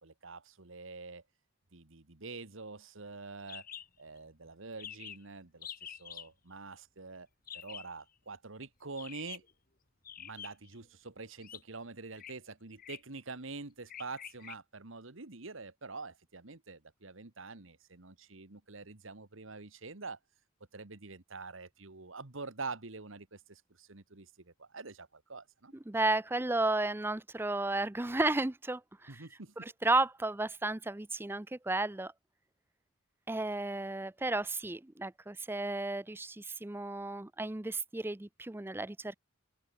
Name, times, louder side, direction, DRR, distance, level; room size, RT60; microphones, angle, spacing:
voice 1, 0.0-1.2 1.7-3.6 4.0-7.3 7.5-9.4 10.2-20.2 20.7-25.7 29.1-29.7, right 3 dB, 70° right, 1.7 m, -46 dB
sound 1, 3.5-3.9 4.2-4.3 4.5-4.6 4.8-5.2 5.6-6.3 7.5-7.9 8.9-9.5 10.0-10.7 11.4-11.6 12.1-12.3 12.8-13.1 13.9-14.5, left 9 dB, 45° left, 3.2 m, -46 dB
voice 2, 25.9-29.2 29.6-32.1 33.3-39.2, right 2 dB, 10° right, 0.5 m, -33 dB
open air
head